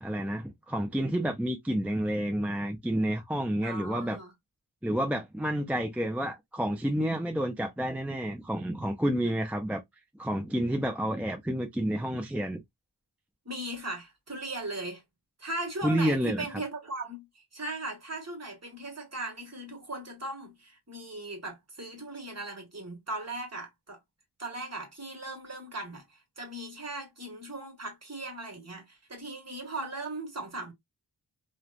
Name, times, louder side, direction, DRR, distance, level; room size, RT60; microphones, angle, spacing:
voice 1, 0.0-4.2 4.8-9.8 10.1-12.6 15.8-16.4, equal, 5° right, 0.4 m, -29 dB
voice 2, 3.6-4.3 13.4-15.0 15.4-24.0 24.4-30.7, right 2 dB, 35° right, 1.2 m, -38 dB
3.1 x 2.1 x 2.4 m
wide cardioid pair, 60°, 43 cm